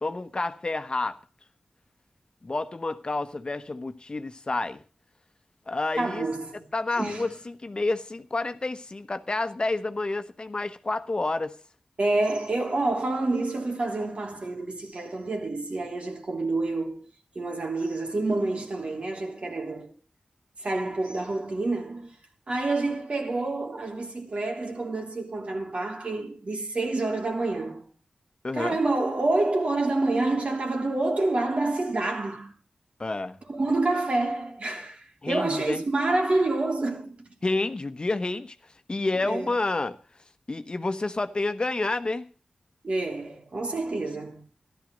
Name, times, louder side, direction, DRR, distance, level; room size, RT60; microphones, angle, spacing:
voice 1, 0.0-1.2 2.4-4.8 5.7-6.2 6.7-11.6 28.4-28.8 33.0-33.4 35.2-35.8 37.4-38.6 38.9-40.0 40.5-42.3, left 2 dB, 40° left, 1.1 m, -29 dB
voice 2, 6.0-6.6 7.0-7.3 12.0-17.0 17.3-19.9 20.6-22.1 22.5-27.9 28.5-32.5 33.5-37.3 39.2-39.5 42.8-44.4, right 2 dB, 60° right, 3.2 m, -28 dB
14.0 x 12.0 x 5.3 m
cardioid pair, 55°, 2 cm